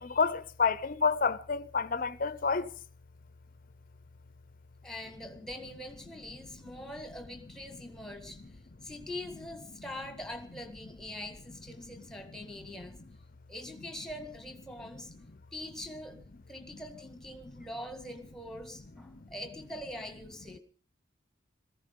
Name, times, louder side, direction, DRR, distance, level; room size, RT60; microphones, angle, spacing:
voice 1, 0.0-2.7 16.7-16.8, left 5 dB, 45° left, 0.8 m, -29 dB
voice 2, 4.8-13.0 13.5-15.2 15.5-20.6, left 1 dB, 5° left, 1.8 m, -43 dB
17.5 x 15.0 x 5.4 m
head